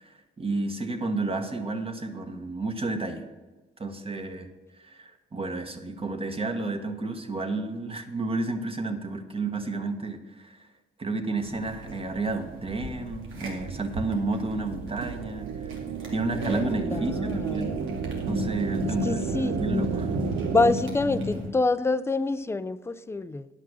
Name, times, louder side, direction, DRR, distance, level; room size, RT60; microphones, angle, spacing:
voice 1, 0.0-3.3 3.8-4.5 4.8-10.7 11.0-15.8 16.1-17.8 18.3-20.1, right 3 dB, 30° right, 7 dB, 1.2 m, -31 dB
sound 1, 11.4-21.5, left 1 dB, 85° right, 2.4 m, -34 dB
sound 2, 13.1-20.7, right 9 dB, 70° right, 0.6 m, -34 dB
voice 2, 16.8-17.9 18.9-19.6 20.2-23.5, left 3 dB, 15° left, 15 dB, 0.4 m, -27 dB
10.5 x 5.8 x 6.2 m, 1.2 s
cardioid pair, 90°, 20 cm